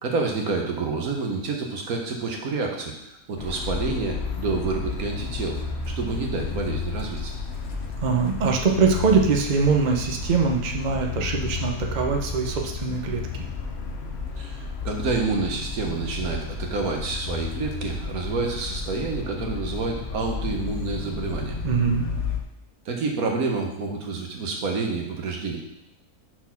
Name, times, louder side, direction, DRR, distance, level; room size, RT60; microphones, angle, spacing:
voice 1, 0.0-2.9 3.3-5.6 5.9-7.3 14.4-21.6 22.8-25.6, right 4 dB, 75° right, 1 dB, 1.5 m, -28 dB
sound 1, 3.4-22.4, left 4 dB, 50° left, 1.0 m, -32 dB
voice 2, 8.0-13.2 21.6-22.0, right 5 dB, 40° right, 1 dB, 0.7 m, -22 dB
6.2 x 4.3 x 5.7 m, 0.85 s
omnidirectional pair, 1.5 m